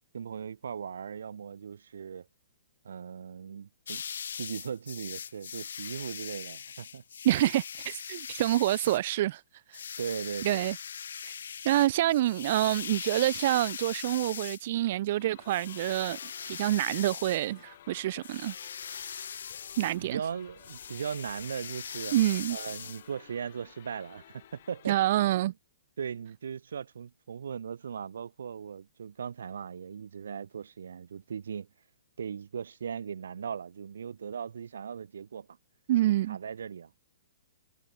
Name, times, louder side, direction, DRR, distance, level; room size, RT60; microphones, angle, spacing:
voice 1, 0.1-2.3 2.8-4.0 4.4-7.0 10.0-10.7 20.0-22.1 22.5-25.0 26.0-31.7 32.2-35.5 36.3-36.9, right 7 dB, 80° right, 1.1 m, -38 dB
sound 1, 3.9-9.1 9.7-14.7 15.5-17.5 18.2-20.0 20.6-23.0, left 7 dB, 75° left, 0.3 m, -41 dB
voice 2, 7.2-9.4 9.7-9.8 10.4-10.8 11.2-11.3 11.6-16.2 16.5-18.6 19.0-19.2 19.8-20.2 22.1-22.6 24.9-25.5 35.9-36.4, right 14 dB, 40° right, 0.4 m, -27 dB
sound 2, 15.2-25.3, left 12 dB, 45° left, 5.8 m, -55 dB
hypercardioid pair, 165°, 0 cm